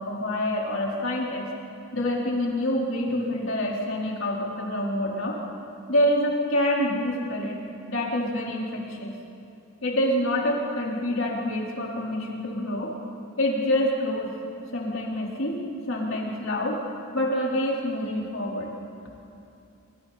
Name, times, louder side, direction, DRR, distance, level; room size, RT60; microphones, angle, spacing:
voice 1, 0.0-1.4 1.9-5.4 5.9-7.6 7.9-9.1 9.8-12.9 13.4-14.3 14.7-16.8 17.1-18.7, left 1 dB, 65° left, -3 dB, 4.5 m, -26 dB
28.5 x 25.5 x 4.4 m, 2.7 s
head